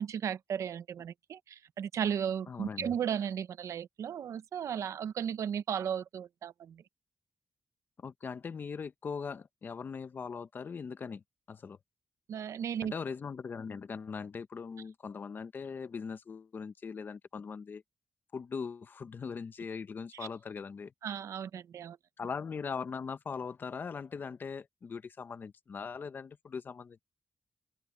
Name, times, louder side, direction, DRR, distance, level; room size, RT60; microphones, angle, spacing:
voice 1, 0.0-6.8 12.3-12.9 21.0-22.0, right 8 dB, 85° right, 0.7 m, -35 dB
voice 2, 2.5-2.9 8.0-11.2 11.5-11.8 12.8-17.8 18.3-20.9 22.2-27.0, left 5 dB, 40° left, 0.7 m, -40 dB
open air
wide cardioid pair, 175°, 5 cm